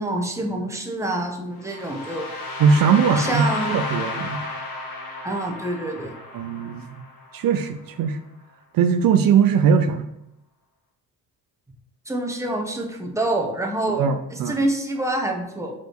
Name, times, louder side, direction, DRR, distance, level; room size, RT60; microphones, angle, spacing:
voice 1, 0.0-2.3 3.2-3.7 5.2-6.1 12.1-14.0 14.3-15.7, right 1 dB, 10° right, 1 dB, 1.2 m, -26 dB
sound 1, 1.6-7.6, left 2 dB, 75° left, 1.6 m, -32 dB
voice 2, 2.6-4.5 6.3-7.0 7.3-8.2 8.7-10.1 14.0-14.6, right 6 dB, 65° right, 8 dB, 0.6 m, -20 dB
5.2 x 4.3 x 4.8 m, 0.82 s
cardioid pair, 105°, 36 cm